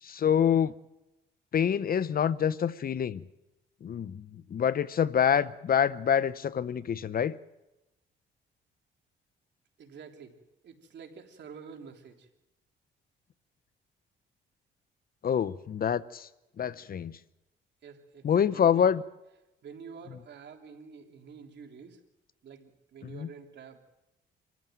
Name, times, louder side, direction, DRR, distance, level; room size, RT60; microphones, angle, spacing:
voice 1, 0.0-0.7 1.5-3.2 3.8-7.3 15.2-16.3 16.6-17.2 18.2-19.0 20.1-20.2 23.0-23.3, left 8 dB, 45° left, 0.7 m, -26 dB
voice 2, 9.8-10.3 10.6-12.1 17.8-18.8 19.6-22.0 22.4-23.8, right 6 dB, 60° right, 3.4 m, -48 dB
26.5 x 14.5 x 9.3 m
cardioid pair, 90°, 20 cm